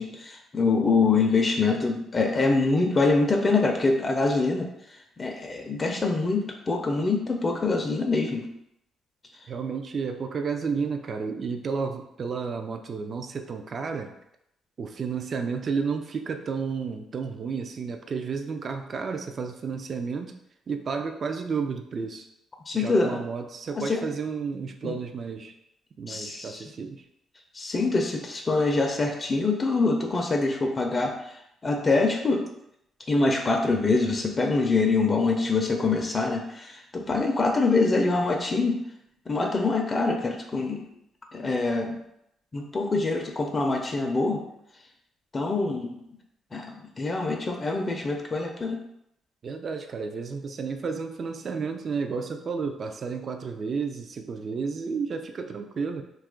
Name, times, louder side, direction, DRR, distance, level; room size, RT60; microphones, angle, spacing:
voice 1, 0.0-4.7 5.2-8.4 22.7-23.2 23.8-24.0 24.8-24.9 26.1-26.6 27.5-31.1 31.6-32.4 33.1-38.8 39.3-40.8 41.3-42.0 42.5-44.4 45.3-46.0 46.5-48.8, left 3 dB, 30° left, 2 dB, 0.4 m, -25 dB
voice 2, 9.5-14.1 14.8-20.4 20.7-22.3 22.7-25.5 26.0-27.0 49.4-56.0, right 5 dB, 45° right, 6 dB, 0.3 m, -32 dB
2.8 x 2.3 x 3.7 m, 0.79 s
cardioid pair, 90°, 0 cm